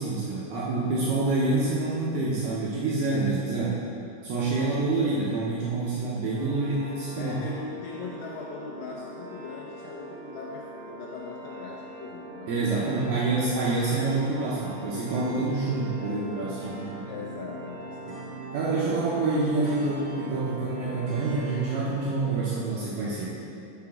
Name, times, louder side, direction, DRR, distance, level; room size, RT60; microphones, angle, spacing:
voice 1, 0.0-3.8 4.2-7.4 12.5-16.6 18.5-23.4, right 3 dB, 80° right, -6 dB, 2.2 m, -27 dB
sound 1, 6.3-21.7, right 3 dB, 60° right, 2.2 m, -41 dB
voice 2, 7.2-13.2 17.1-18.3 18.9-19.1, left 4 dB, 85° left, -3 dB, 2.3 m, -40 dB
6.0 x 5.8 x 5.8 m, 2.7 s
omnidirectional pair, 5.3 m